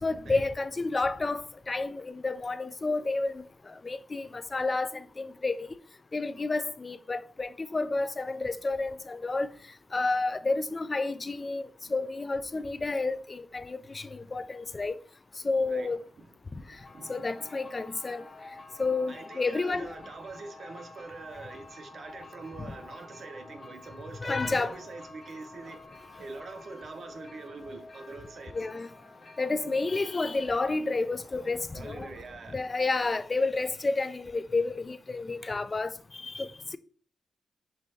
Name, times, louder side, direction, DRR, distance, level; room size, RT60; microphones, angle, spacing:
voice 1, 0.0-5.7 6.1-9.5 9.9-15.0 15.4-16.0 17.1-18.2 18.8-19.9 24.2-24.8 28.5-28.9 29.4-32.1 32.5-36.8, left 3 dB, 35° left, 0.3 m, -30 dB
voice 2, 16.2-17.5 19.1-25.9 26.2-28.6 31.7-32.7, right 3 dB, 65° right, 0.7 m, -44 dB
sound 1, 16.7-33.2, left 2 dB, 60° left, 1.1 m, -50 dB
5.4 x 3.2 x 2.7 m
supercardioid pair, 50°, 0 cm